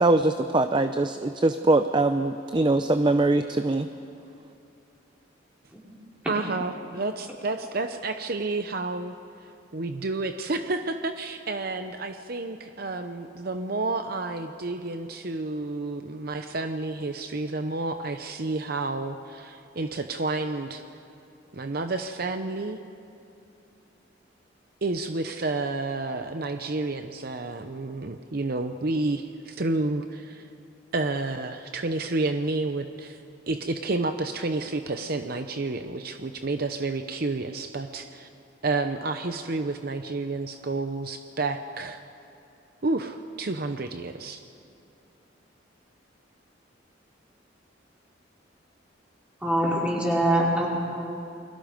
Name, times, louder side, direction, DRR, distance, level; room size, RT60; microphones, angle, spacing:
voice 1, 0.0-3.9, right 2 dB, 25° right, 9 dB, 0.5 m, -22 dB
voice 2, 6.3-9.1 9.7-20.8 21.5-22.8 24.8-30.5 30.9-33.2 33.5-38.3 38.6-42.0 42.8-44.4, right 3 dB, 50° right, 7 dB, 0.8 m, -30 dB
voice 3, 49.4-50.7, right 1 dB, 5° right, -5 dB, 5.0 m, -23 dB
29.5 x 22.0 x 5.2 m, 2.7 s
head